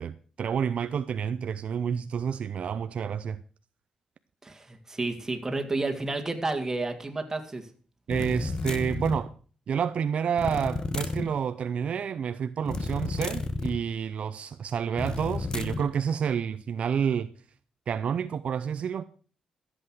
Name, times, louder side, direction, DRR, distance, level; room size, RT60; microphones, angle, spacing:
voice 1, 0.0-3.4 8.1-9.3 9.7-17.3 17.9-19.0, right 7 dB, 60° right, 0.6 m, -29 dB
voice 2, 4.4-7.7, right 2 dB, 20° right, 2.3 m, -31 dB
sound 1, 8.1-9.3 10.4-11.3 12.6-13.8 15.0-15.9, left 3 dB, 30° left, 1.2 m, -31 dB
14.0 x 8.1 x 6.4 m
cardioid pair, 110°, 2 cm